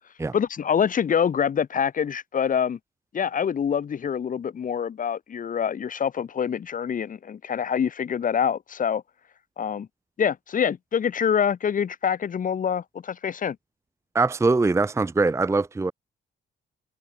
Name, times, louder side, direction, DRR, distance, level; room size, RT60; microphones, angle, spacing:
voice 1, 0.3-2.8 3.1-9.0 9.6-9.9 10.2-13.6, left 7 dB, 45° left, 1.0 m, -25 dB
voice 2, 14.1-15.9, right 3 dB, 15° right, 0.7 m, -22 dB
cardioid pair, 90°, 20 cm